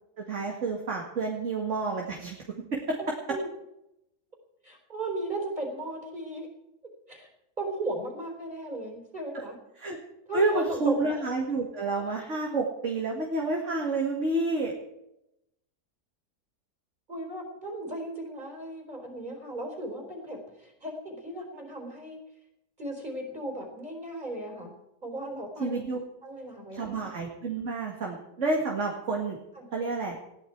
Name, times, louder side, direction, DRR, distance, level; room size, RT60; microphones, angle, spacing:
voice 1, 0.2-2.4 2.7-3.0 9.8-10.0 10.3-14.7 25.6-26.0 26.7-29.4 29.7-30.2, right 3 dB, 50° right, 0 dB, 2.3 m, -29 dB
voice 2, 3.0-3.5 4.6-6.5 7.1-7.3 7.6-9.6 10.3-11.2 17.1-22.2 22.8-24.7 25.0-25.8 26.2-27.0 29.5-29.7, right 1 dB, 30° right, 1 dB, 4.6 m, -36 dB
20.5 x 14.5 x 4.6 m, 0.86 s
omnidirectional pair, 1.7 m